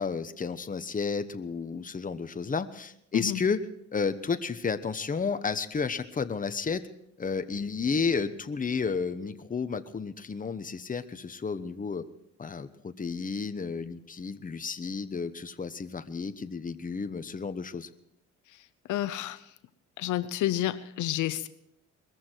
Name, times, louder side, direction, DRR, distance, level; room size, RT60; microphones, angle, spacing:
voice 1, 0.0-3.6 3.9-6.9 7.2-12.0 12.4-17.9, left 5 dB, 25° left, 11 dB, 1.1 m, -32 dB
voice 2, 18.9-19.4 20.0-21.5, left 13 dB, 80° left, 14 dB, 0.8 m, -29 dB
21.5 x 14.5 x 4.6 m, 0.75 s
cardioid pair, 90°, 30 cm